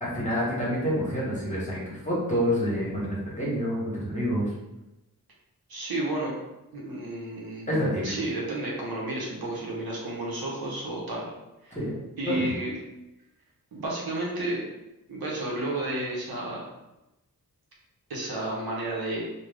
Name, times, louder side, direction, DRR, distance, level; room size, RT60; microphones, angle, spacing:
voice 1, 0.0-4.5 7.7-8.1 11.7-11.9 12.2-12.5, equal, 20° left, -6 dB, 1.1 m, -28 dB
voice 2, 5.7-6.3 6.7-11.3 11.6-11.8 12.2-12.7 13.7-14.6 15.1-16.7 18.1-19.2, right 1 dB, 75° right, -4 dB, 0.8 m, -32 dB
2.4 x 2.2 x 3.3 m, 0.95 s
wide cardioid pair, 70°, 37 cm